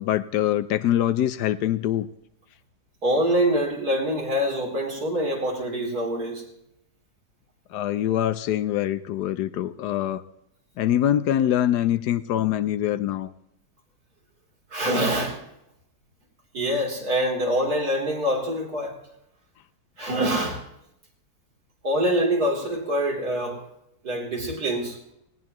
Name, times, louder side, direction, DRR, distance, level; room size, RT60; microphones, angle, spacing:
voice 1, 0.0-2.1 7.7-10.2 10.8-13.3, left 11 dB, 85° left, 14 dB, 1.3 m, -24 dB
voice 2, 3.0-6.4 14.7-15.4 16.5-19.0 20.0-20.6 21.8-23.6 24.0-25.0, equal, 65° right, 0 dB, 3.9 m, -25 dB
19.0 x 18.5 x 3.0 m, 0.80 s
omnidirectional pair, 1.7 m